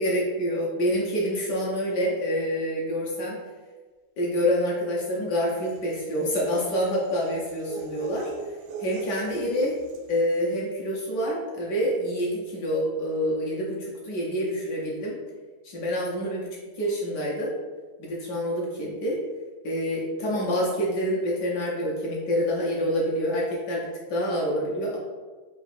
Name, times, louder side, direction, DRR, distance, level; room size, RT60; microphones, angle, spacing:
voice 1, 0.0-3.4 4.2-8.3 8.8-9.8 10.1-15.1 15.6-16.5 16.8-17.5 18.0-19.2 19.6-25.0, equal, 65° left, -4 dB, 1.2 m, -27 dB
sound 1, 5.6-10.2, right 4 dB, 85° right, 1.5 m, -40 dB
3.8 x 2.4 x 4.2 m, 1.4 s
omnidirectional pair, 2.4 m